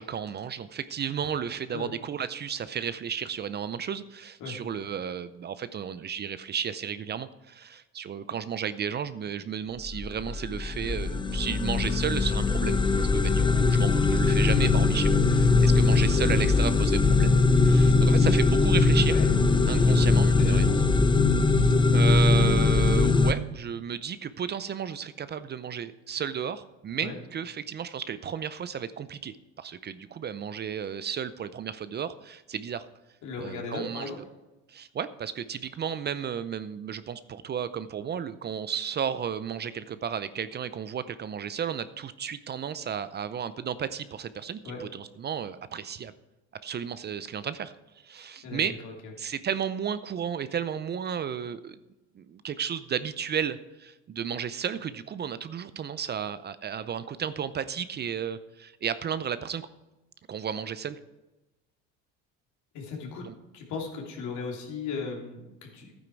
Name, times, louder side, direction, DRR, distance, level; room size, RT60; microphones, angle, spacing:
voice 1, 0.0-19.2 19.7-20.7 21.6-32.9 33.4-34.1 34.7-46.1 46.6-47.7 48.0-48.8 49.2-51.8 52.2-59.7 60.3-61.0 63.2-63.4, right 8 dB, 35° right, 14 dB, 0.5 m, -33 dB
sound 1, 9.9-23.3, left 3 dB, 15° left, 0.7 m, -21 dB
voice 2, 19.8-20.1 20.4-20.8 27.0-27.2 33.2-34.2 44.6-44.8 48.1-49.1 62.7-63.3 63.5-65.9, left 4 dB, 65° left, 0 dB, 3.1 m, -37 dB
12.0 x 9.3 x 4.7 m, 1.0 s
supercardioid pair, 100°, 31 cm